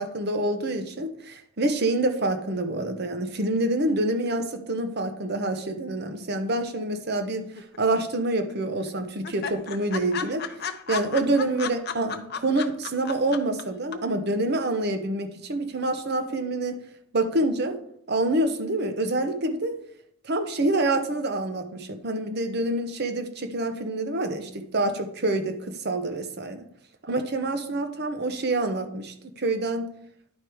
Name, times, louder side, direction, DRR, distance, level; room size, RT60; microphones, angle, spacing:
voice 1, 0.0-7.5 7.8-10.5 10.9-16.7 17.1-17.8 18.1-19.7 20.2-26.6 27.0-29.9, right 2 dB, 50° right, 8 dB, 0.9 m, -27 dB
sound 1, 7.6-8.2 8.5-8.6 8.9-9.0 9.2-13.6 13.9-14.0, left 7 dB, 50° left, 0.6 m, -33 dB
10.5 x 4.9 x 4.6 m, 0.69 s
head